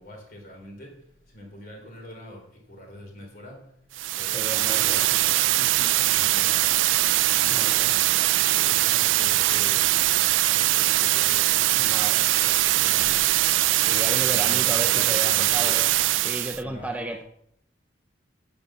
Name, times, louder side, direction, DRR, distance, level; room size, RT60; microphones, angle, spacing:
voice 1, 0.0-10.2 10.5-15.8 16.2-17.2, left 1 dB, 50° left, 1 dB, 3.7 m, -44 dB
sound 1, 3.9-16.6, right 16 dB, 90° right, 0.4 m, -22 dB
voice 2, 4.3-5.0 5.6-5.9 7.5-7.8 11.8-12.3 13.9-15.9 16.2-17.2, right 1 dB, 10° right, 5 dB, 0.6 m, -34 dB
8.9 x 7.0 x 7.4 m, 0.72 s
head